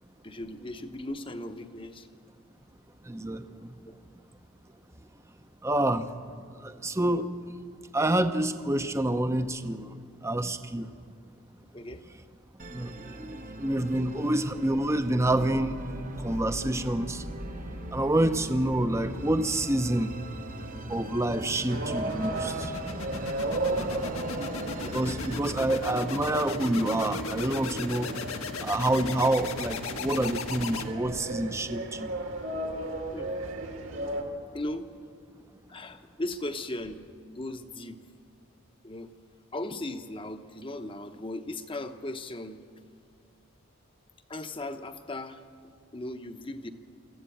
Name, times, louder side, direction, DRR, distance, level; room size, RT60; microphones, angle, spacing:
voice 1, 0.2-2.1 3.8-4.0 11.7-12.0 14.2-14.3 24.3-24.5 25.7-25.8 33.1-33.3 34.5-34.9 35.7-38.0 38.8-39.1 39.5-42.6 44.3-45.4 45.9-46.7, left 1 dB, 25° left, 8 dB, 0.9 m, -37 dB
voice 2, 3.0-3.7 5.6-6.1 6.6-7.3 7.9-10.9 12.7-15.9 16.2-17.3 17.9-20.1 20.9-22.7 24.9-28.1 28.6-32.1, right 1 dB, 15° right, 9 dB, 0.7 m, -28 dB
Musical instrument, 12.6-25.4, right 2 dB, 40° right, 0.9 m, -43 dB
sound 1, 15.2-31.3, left 3 dB, 85° left, 1.5 m, -38 dB
sound 2, 21.7-34.2, right 2 dB, 70° right, 2.4 m, -35 dB
24.5 x 14.0 x 8.6 m, 2.2 s
head